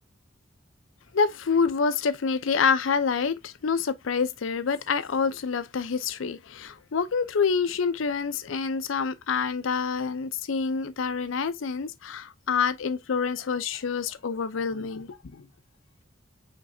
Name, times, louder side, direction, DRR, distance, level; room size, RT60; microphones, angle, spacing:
voice 1, 1.1-15.5, left 5 dB, 80° left, 0.5 m, -27 dB
5.1 x 3.3 x 2.6 m
head